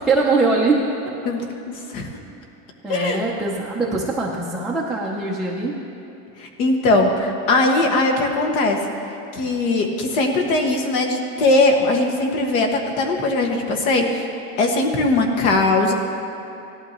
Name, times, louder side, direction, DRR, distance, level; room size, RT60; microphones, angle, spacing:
voice 1, 0.1-0.8 2.8-5.7, right 3 dB, ahead, -6 dB, 0.4 m, -22 dB
voice 2, 1.7-2.1 2.9-3.2 6.4-8.8 9.1-14.3 14.6-15.9, left 2 dB, 70° left, 2 dB, 1.8 m, -20 dB
18.0 x 12.0 x 3.0 m, 2.8 s
supercardioid pair, 165°, 43 cm